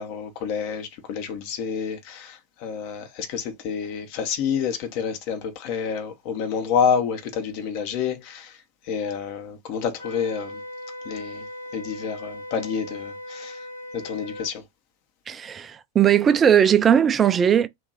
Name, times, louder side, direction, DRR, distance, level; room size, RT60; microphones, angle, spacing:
voice 1, 0.0-8.6 8.9-10.6 11.0-11.5 11.7-13.6 13.9-14.6, left 7 dB, 45° left, 0.9 m, -28 dB
Wind instrument woodwind instrument, 10.0-14.5, left 1 dB, 75° left, 0.8 m, -38 dB
voice 2, 15.3-17.7, right 8 dB, 20° right, 0.3 m, -18 dB
3.0 x 2.5 x 3.8 m
figure-of-eight pair, 90°, 0 cm